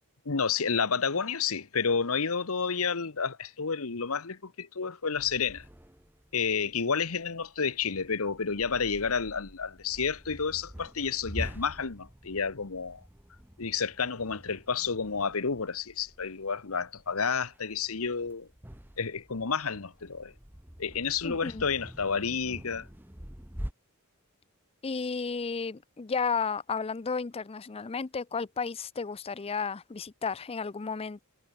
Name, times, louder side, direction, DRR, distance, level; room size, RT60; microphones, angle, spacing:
voice 1, 0.2-5.6 6.3-13.0 13.6-18.5 19.0-20.3 20.8-22.9, left 5 dB, 70° left, 1.2 m, -30 dB
sound 1, 5.2-23.7, equal, 10° right, 1.2 m, -46 dB
voice 2, 21.2-21.6 24.8-31.2, left 5 dB, 25° left, 0.5 m, -33 dB
head